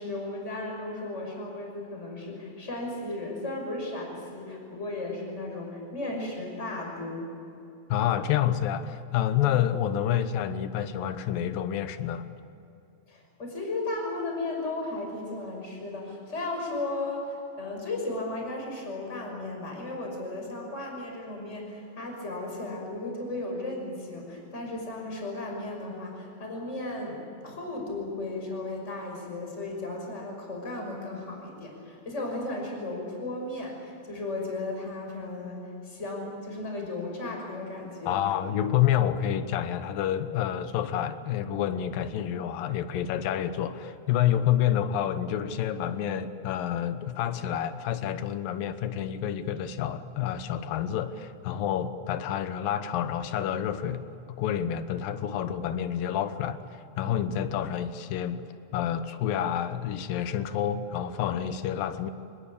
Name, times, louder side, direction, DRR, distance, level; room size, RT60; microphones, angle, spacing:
voice 1, 0.0-7.3 13.1-27.2 27.4-38.2, left 2 dB, 15° left, 0 dB, 5.9 m, -35 dB
voice 2, 7.9-12.3 38.1-54.0 54.4-56.6 57.0-58.4 58.7-62.1, left 10 dB, 70° left, 11 dB, 2.4 m, -28 dB
26.0 x 20.5 x 8.6 m, 2.8 s
omnidirectional pair, 5.0 m